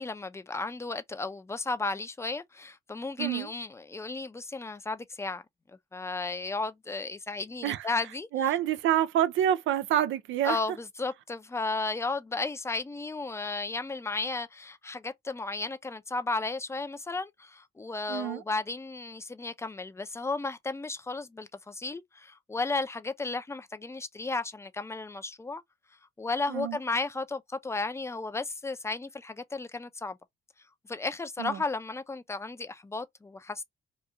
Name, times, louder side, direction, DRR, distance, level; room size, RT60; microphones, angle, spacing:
voice 1, 0.0-5.4 5.9-8.5 10.4-25.6 26.2-30.2 30.9-33.6, left 3 dB, 15° left, 0.5 m, -34 dB
voice 2, 8.3-10.6 18.1-18.4 26.5-26.8 31.4-31.6, right 11 dB, 80° right, 0.5 m, -27 dB
2.9 x 2.3 x 3.4 m
cardioid pair, 90°, 20 cm